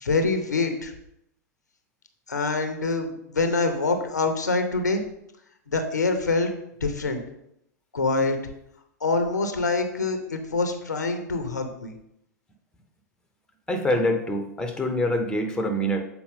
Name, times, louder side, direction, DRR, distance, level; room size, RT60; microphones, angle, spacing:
voice 1, 0.0-0.9 2.3-5.0 5.7-6.5 6.8-7.2 7.9-8.4 9.0-11.9, left 3 dB, 80° left, 6 dB, 0.8 m, -25 dB
voice 2, 13.7-16.0, equal, 5° left, 5 dB, 0.7 m, -25 dB
6.9 x 4.4 x 3.6 m, 0.79 s
figure-of-eight pair, 95°, 9 cm